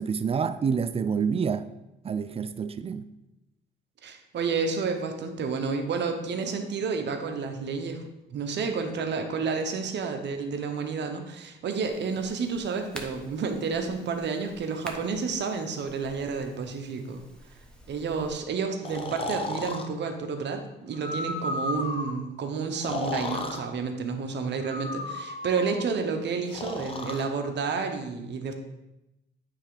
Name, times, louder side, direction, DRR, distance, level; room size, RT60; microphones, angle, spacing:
voice 1, 0.0-1.7 2.0-3.1, right 6 dB, 30° right, 0.4 m, -28 dB
voice 2, 4.0-8.0 8.3-17.2 17.9-28.5, right 5 dB, 60° right, 1.0 m, -30 dB
sound 1, 11.7-18.3, equal, 5° left, 1.0 m, -48 dB
Breathing, 18.8-19.9 20.9-22.2 22.7-23.6 24.6-25.8 26.5-27.3, left 2 dB, 30° left, 0.9 m, -34 dB
9.1 x 3.4 x 4.9 m
cardioid pair, 90°, 20 cm